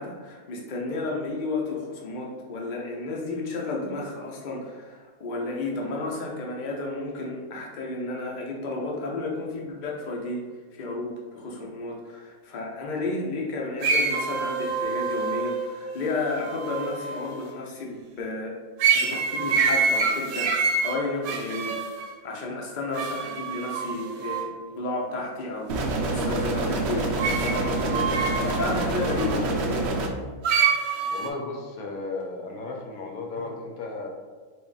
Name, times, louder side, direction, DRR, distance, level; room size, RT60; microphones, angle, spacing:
voice 1, 0.0-10.4 10.7-18.6 18.9-21.8 22.2-29.9 31.0-31.1 33.4-33.5, left 2 dB, 45° left, -2 dB, 0.6 m, -32 dB
sound 1, 13.8-17.4 18.8-22.1 22.9-24.4 27.2-29.3 30.4-31.3, right 5 dB, 85° right, 1.0 m, -26 dB
sound 2, 25.7-30.1, right 2 dB, 65° right, 0.7 m, -27 dB
voice 2, 31.1-34.1, left 3 dB, 80° left, 1 dB, 1.1 m, -34 dB
3.5 x 2.5 x 3.8 m, 1.5 s
omnidirectional pair, 1.5 m